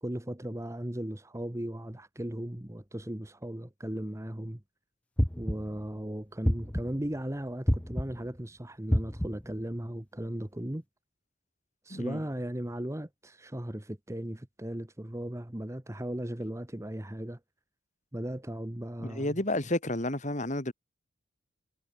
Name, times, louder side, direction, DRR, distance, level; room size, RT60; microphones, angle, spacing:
voice 1, 0.0-4.6 5.4-10.8 11.8-17.4 18.1-19.4, right 1 dB, 15° right, 1.1 m, -37 dB
sound 1, 5.2-5.8 6.4-7.1 7.7-8.3 8.9-9.6, equal, 5° left, 0.7 m, -28 dB
voice 2, 11.9-12.2 19.0-20.7, left 1 dB, 40° left, 3.7 m, -31 dB
head